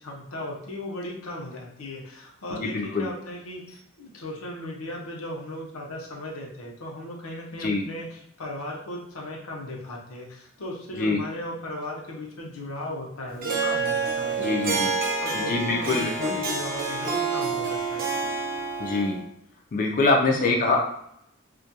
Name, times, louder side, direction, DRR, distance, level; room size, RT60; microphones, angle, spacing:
voice 1, 0.0-14.9 15.2-18.1 20.3-20.6, left 1 dB, 85° left, -1 dB, 0.6 m, -37 dB
voice 2, 2.5-3.1 7.6-7.8 11.0-11.2 14.4-14.9 15.3-16.4 18.8-19.2 19.7-20.8, left 3 dB, 40° left, 0 dB, 0.3 m, -24 dB
Harp, 13.4-19.2, right 4 dB, 45° right, 0.4 m, -28 dB
2.3 x 2.2 x 2.7 m, 0.74 s
head